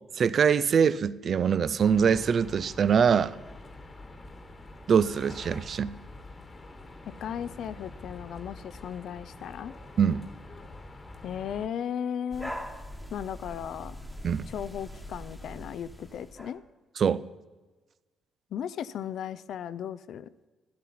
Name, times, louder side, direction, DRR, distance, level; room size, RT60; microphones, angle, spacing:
voice 1, 0.2-3.3 4.9-5.9 10.0-10.2 14.2-14.5 17.0-17.2, right 7 dB, 55° right, 17 dB, 0.4 m, -23 dB
sound 1, 1.8-11.7, left 2 dB, 30° left, 1.3 m, -46 dB
voice 2, 7.2-9.7 11.2-12.5 13.1-14.0 14.5-16.6 18.5-20.5, left 9 dB, 70° left, 15 dB, 0.4 m, -36 dB
sound 2, 12.3-16.6, equal, ahead, 1.2 m, -42 dB
13.0 x 11.0 x 4.2 m, 1.2 s
cardioid pair, 90°, 0 cm